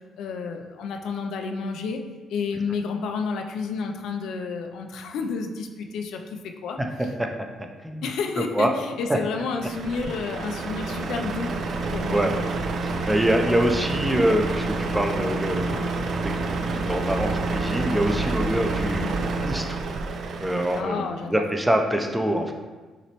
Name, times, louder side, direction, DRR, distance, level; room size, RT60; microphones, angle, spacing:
voice 1, 0.2-6.8 8.0-11.6 11.9-12.2 20.8-21.4, left 5 dB, 80° left, 4 dB, 0.4 m, -30 dB
voice 2, 8.4-8.7 9.1-9.2 12.1-12.5 12.8-15.9 16.2-16.3 16.6-19.1 19.4-19.8 20.4-22.5, equal, 10° right, 4 dB, 0.5 m, -25 dB
Truck, 9.6-20.8, right 3 dB, 60° right, 0.4 m, -28 dB
5.8 x 3.0 x 2.9 m, 1.3 s
cardioid pair, 90°, 0 cm